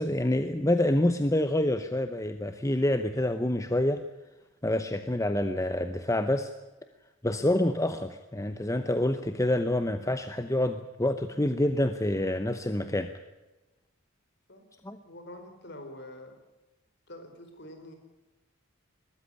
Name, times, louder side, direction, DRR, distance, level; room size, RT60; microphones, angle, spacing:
voice 1, 0.0-4.0 4.6-6.5 7.2-13.1 14.8-15.0, left 1 dB, 15° left, 9 dB, 0.8 m, -27 dB
voice 2, 15.0-16.4 17.1-18.0, left 1 dB, 50° left, 6 dB, 4.4 m, -45 dB
21.0 x 14.0 x 10.0 m, 1.1 s
head